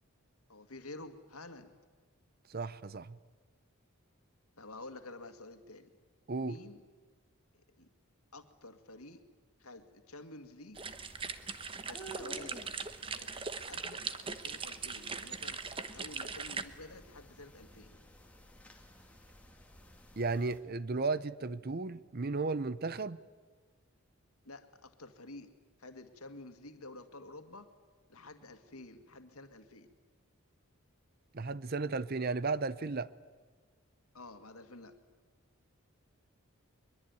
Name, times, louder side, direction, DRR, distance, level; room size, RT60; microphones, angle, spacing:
voice 1, 0.5-1.8 4.6-5.9 6.4-6.8 7.8-7.9 8.3-9.2 9.6-10.9 11.8-12.6 13.1-15.6 15.9-18.0 24.4-25.5 25.8-27.7 28.1-29.9 34.1-35.0, left 2 dB, 85° left, 2.1 m, -50 dB
voice 2, 2.5-3.2 6.3-6.6 20.2-23.2 31.3-33.1, right 3 dB, 45° right, 0.7 m, -34 dB
sound 1, 10.7-20.6, right 1 dB, 5° left, 2.6 m, -54 dB
sound 2, 10.8-16.6, right 5 dB, 25° right, 1.0 m, -40 dB
23.0 x 22.5 x 9.6 m
head